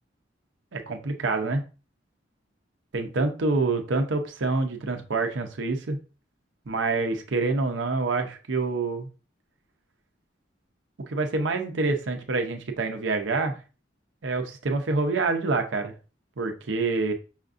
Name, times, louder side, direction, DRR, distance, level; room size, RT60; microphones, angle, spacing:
voice 1, 0.7-1.6 2.9-6.0 6.7-9.1 11.1-13.6 14.2-15.9 16.4-17.1, right 3 dB, 75° right, 5 dB, 0.7 m, -26 dB
5.6 x 2.5 x 2.5 m, 0.33 s
head